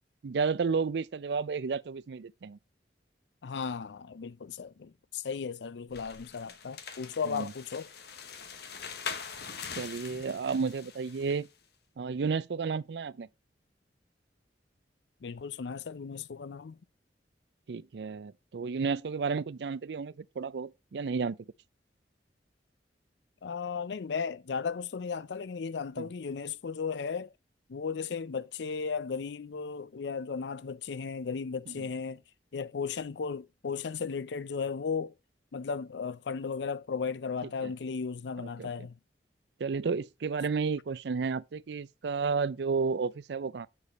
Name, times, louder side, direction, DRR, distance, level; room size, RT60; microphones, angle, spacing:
voice 1, 0.2-2.6 7.3-7.5 9.8-11.5 12.0-13.3 17.7-21.4 26.0-26.1 31.7-31.9 37.6-37.7 38.6-38.9 39.6-43.7, right 5 dB, 70° right, 0.4 m, -32 dB
voice 2, 3.4-7.9 15.2-16.8 23.4-27.3 27.7-32.2 32.5-35.1 35.5-39.0, left 5 dB, 80° left, 0.5 m, -35 dB
sound 1, 5.9-11.5, left 6 dB, 65° left, 1.2 m, -43 dB
8.4 x 6.9 x 4.1 m
head